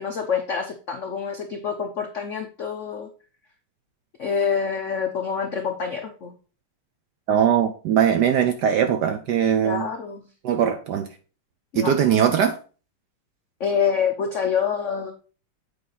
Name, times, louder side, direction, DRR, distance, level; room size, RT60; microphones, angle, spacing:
voice 1, 0.0-3.1 4.2-6.3 9.6-10.3 11.7-11.9 13.6-15.1, left 6 dB, 80° left, 4 dB, 0.6 m, -26 dB
voice 2, 7.3-9.9 10.4-11.1 11.7-12.6, right 8 dB, 70° right, 7 dB, 1.0 m, -20 dB
8.3 x 4.8 x 3.9 m, 0.37 s
omnidirectional pair, 2.4 m